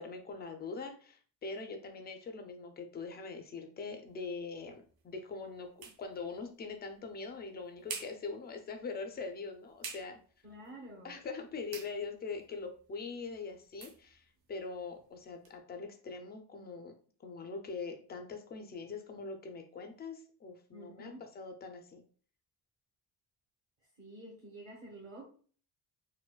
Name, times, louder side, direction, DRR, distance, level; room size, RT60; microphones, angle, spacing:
voice 1, 0.0-10.2 11.0-16.9 17.2-22.0, left 4 dB, 25° left, 5 dB, 0.4 m, -43 dB
sound 1, 4.1-15.6, right 5 dB, 60° right, 0.8 m, -52 dB
voice 2, 10.4-11.1 20.7-21.2 24.0-25.2, right 1 dB, 35° right, -5 dB, 0.9 m, -49 dB
4.7 x 2.2 x 2.2 m, 0.43 s
cardioid pair, 170°, 41 cm